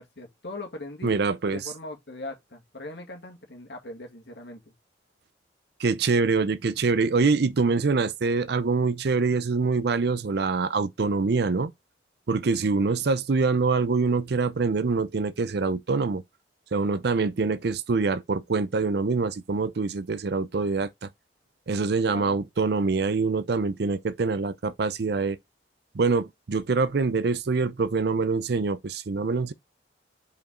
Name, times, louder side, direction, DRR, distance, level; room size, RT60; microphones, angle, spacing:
voice 1, 0.0-1.1 1.5-4.7 22.1-22.4, left 2 dB, 65° left, 2.0 m, -40 dB
voice 2, 1.0-1.6 5.8-11.7 12.3-16.2 16.7-21.1 21.7-25.4 25.9-29.5, right 4 dB, 60° right, 0.5 m, -25 dB
5.2 x 5.1 x 3.7 m
head